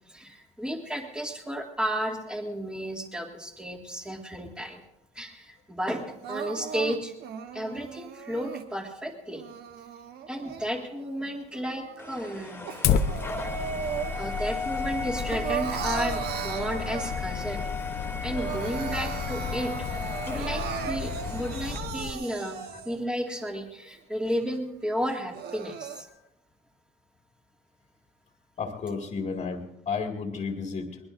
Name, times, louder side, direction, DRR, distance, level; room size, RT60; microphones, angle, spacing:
voice 1, 0.1-4.8 5.1-7.1 7.5-9.4 10.3-12.7 13.5-13.6 14.2-17.7 18.2-26.1, equal, 5° right, 1 dB, 2.1 m, -33 dB
Crying sobbing, 6.2-8.7 9.3-11.1 11.5-14.4 14.8-17.4 17.9-18.0 18.2-23.1 23.6-23.7 24.3-24.4 25.1-26.0, right 8 dB, 75° right, 1.1 m, -37 dB
sound 1, 12.0-21.8, left 3 dB, 10° left, 2.3 m, -37 dB
Fire, 12.8-22.1, left 7 dB, 70° left, 0.9 m, -32 dB
voice 2, 28.6-31.0, left 5 dB, 45° left, 3 dB, 2.0 m, -32 dB
22.5 x 20.0 x 2.6 m, 0.90 s
cardioid pair, 110°, 17 cm